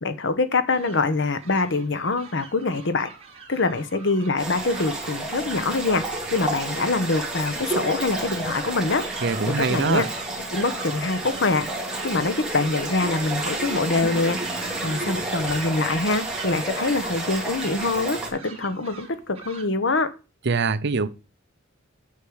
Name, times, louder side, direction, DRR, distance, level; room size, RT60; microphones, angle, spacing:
voice 1, 0.0-3.1 3.5-6.0 6.3-9.0 9.6-10.0 10.5-11.7 12.0-14.4 14.8-20.1, left 3 dB, 60° left, 1.1 m, -24 dB
sound 1, 0.7-19.6, right 4 dB, 30° right, 2.9 m, -44 dB
sound 2, 4.4-18.3, right 2 dB, 5° right, 2.4 m, -30 dB
voice 2, 9.2-10.1 20.5-21.1, right 4 dB, 55° right, 0.7 m, -23 dB
8.5 x 6.4 x 6.4 m
head